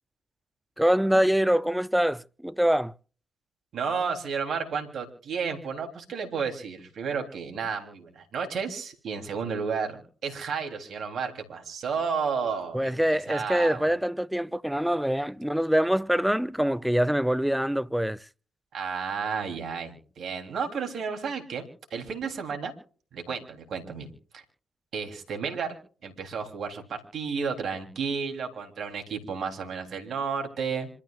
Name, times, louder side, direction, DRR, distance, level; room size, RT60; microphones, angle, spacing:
voice 1, 0.8-2.9 12.7-18.2, equal, 5° right, 0.6 m, -24 dB
voice 2, 3.7-13.9 18.7-21.7 21.9-22.7 23.1-24.1 24.3-24.4 24.9-25.7 26.0-30.9, right 5 dB, 65° right, 3.4 m, -32 dB
27.0 x 13.5 x 2.5 m
hypercardioid pair, 45°, 0 cm